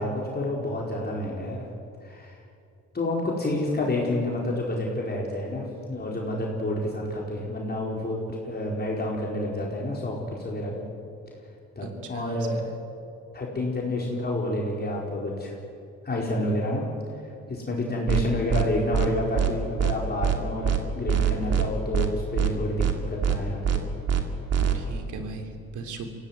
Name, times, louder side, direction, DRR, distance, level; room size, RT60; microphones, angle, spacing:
voice 1, 0.0-1.6 2.0-2.3 2.9-10.9 11.8-12.6 13.3-15.5 16.0-16.9 17.5-23.8, left 1 dB, 30° left, -2 dB, 4.6 m, -29 dB
voice 2, 11.8-12.7 24.7-26.1, right 4 dB, 80° right, 6 dB, 3.3 m, -38 dB
sound 1, 18.1-18.2 18.5-18.6 18.9-19.1 19.4-19.5 19.8-19.9 20.2-20.4 20.6-20.8 21.1-21.6 21.9-22.1 22.4-22.5 22.8-22.9 23.2-23.4 23.6-23.8 24.1-24.2 24.5-24.7, right 9 dB, 55° right, 2.6 m, -23 dB
24.5 x 17.0 x 9.6 m, 2.5 s
cardioid pair, 90°, 30 cm